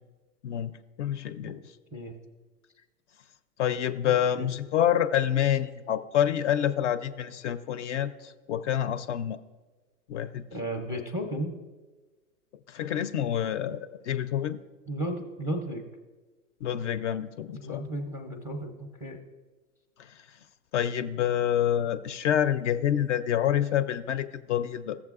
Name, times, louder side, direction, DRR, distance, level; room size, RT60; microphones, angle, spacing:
voice 1, 0.4-1.6 3.6-9.4 10.1-10.4 12.7-14.6 16.6-17.8 20.0-20.2 20.7-25.0, left 10 dB, 50° left, 12 dB, 0.5 m, -27 dB
voice 2, 4.1-4.5 10.5-11.6 14.9-15.8 17.5-19.2, right 1 dB, 5° right, 2 dB, 0.5 m, -34 dB
15.0 x 7.2 x 2.4 m, 1.3 s
hypercardioid pair, 125°, 46 cm